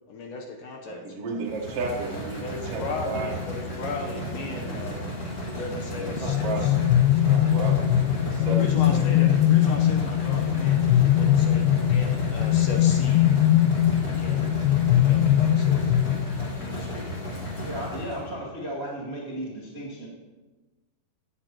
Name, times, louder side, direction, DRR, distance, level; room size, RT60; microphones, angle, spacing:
voice 1, 0.1-1.0 2.4-5.1 5.5-6.7 8.4-13.4 14.1-14.5 15.0-15.9 16.6-17.2 17.6-17.7, left 4 dB, 70° left, 2 dB, 2.1 m, -37 dB
voice 2, 0.9-2.4 2.7-3.3 5.9-6.8 7.2-8.6 8.9-9.0, right 4 dB, 65° right, -2 dB, 1.5 m, -33 dB
sound 1, 1.4-18.3, equal, 30° left, 3.4 m, -34 dB
sound 2, 6.2-16.6, left 11 dB, 90° left, 2.0 m, -21 dB
voice 3, 17.6-20.1, right 1 dB, 85° right, -5 dB, 0.5 m, -35 dB
16.0 x 9.7 x 3.0 m, 1.2 s
omnidirectional pair, 4.5 m